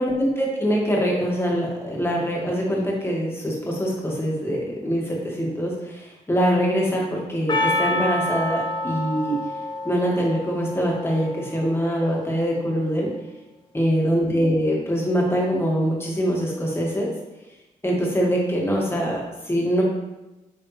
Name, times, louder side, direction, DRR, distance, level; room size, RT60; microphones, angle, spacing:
voice 1, 0.0-9.4 9.8-13.1 13.7-17.1 17.8-19.8, equal, 15° left, -3 dB, 2.0 m, -23 dB
Percussion, 7.5-12.0, left 1 dB, 35° left, 0.8 m, -28 dB
8.0 x 4.1 x 3.3 m, 1.0 s
cardioid pair, 75°, 14 cm